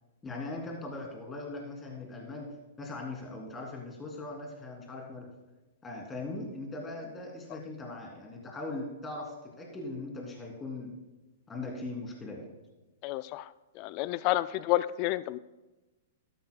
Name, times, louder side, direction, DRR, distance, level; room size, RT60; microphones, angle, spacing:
voice 1, 0.2-2.5 2.8-5.3 5.8-10.9 11.5-12.4 14.1-14.2, left 2 dB, 15° left, 0 dB, 3.0 m, -40 dB
voice 2, 13.0-13.4 13.8-15.4, left 16 dB, 45° left, 17 dB, 0.4 m, -30 dB
13.5 x 11.5 x 2.3 m, 1.1 s
hypercardioid pair, 125°, 0 cm